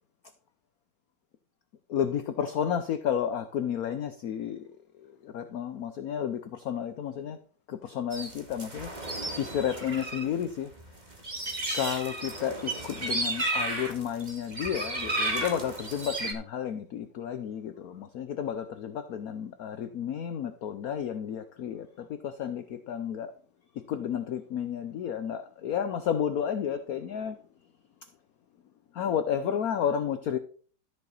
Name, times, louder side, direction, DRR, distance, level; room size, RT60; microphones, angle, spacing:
voice 1, 1.9-7.4 7.7-10.7 11.7-23.3 23.7-27.4 28.9-30.4, left 8 dB, 65° left, 0.9 m, -32 dB
sound 1, 8.1-10.2 10.5-16.3, right 2 dB, 20° right, 1.9 m, -33 dB
13.0 x 6.9 x 4.1 m
omnidirectional pair, 2.3 m